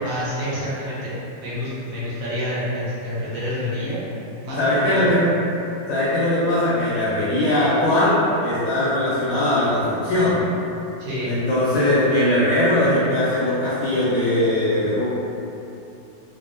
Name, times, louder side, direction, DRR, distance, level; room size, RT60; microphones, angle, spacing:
voice 1, 0.0-1.1 1.4-4.0 4.4-5.1 11.0-11.3, left 1 dB, 70° right, -9 dB, 1.3 m, -28 dB
voice 2, 4.6-5.2 5.9-10.5 11.2-15.1, left 1 dB, 75° left, -10 dB, 1.0 m, -20 dB
3.4 x 2.0 x 2.5 m, 2.8 s
omnidirectional pair, 2.3 m